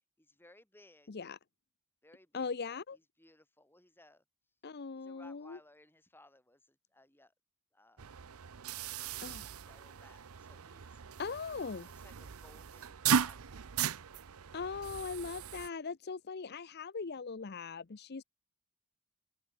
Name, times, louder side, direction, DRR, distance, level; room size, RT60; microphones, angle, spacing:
voice 1, 0.2-1.1 2.0-4.2 4.9-7.3 7.7-8.3 9.6-11.0 11.7-13.6, left 1 dB, 10° left, 6.6 m, -62 dB
voice 2, 1.1-1.4 2.3-3.0 4.6-5.6 9.2-9.5 11.2-11.9 14.5-18.2, left 5 dB, 50° left, 0.6 m, -40 dB
sound 1, 8.0-15.7, right 7 dB, 75° right, 0.7 m, -37 dB
head